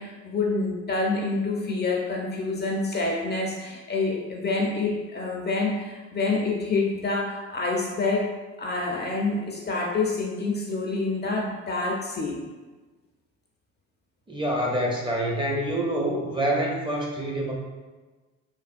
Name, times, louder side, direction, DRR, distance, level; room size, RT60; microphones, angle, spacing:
voice 1, 0.0-8.3 8.6-12.4, left 3 dB, 35° left, -1 dB, 0.5 m, -27 dB
voice 2, 14.3-17.5, right 1 dB, 15° right, -2 dB, 0.5 m, -26 dB
3.2 x 2.2 x 2.5 m, 1.3 s
cardioid pair, 90°, 30 cm